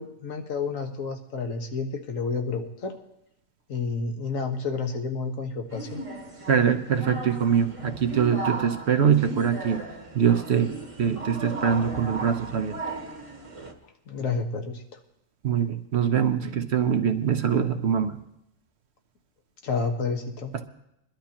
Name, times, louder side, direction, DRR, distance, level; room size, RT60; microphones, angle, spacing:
voice 1, 0.0-2.9 3.7-6.0 14.1-14.8 19.6-20.5, left 4 dB, 65° left, 4 dB, 1.5 m, -30 dB
sound 1, 5.7-13.7, right 2 dB, 25° right, 1.1 m, -37 dB
voice 2, 6.5-9.8 10.1-12.8 15.4-18.2, right 7 dB, 55° right, 8 dB, 0.9 m, -23 dB
22.0 x 12.0 x 2.9 m, 0.79 s
omnidirectional pair, 1.5 m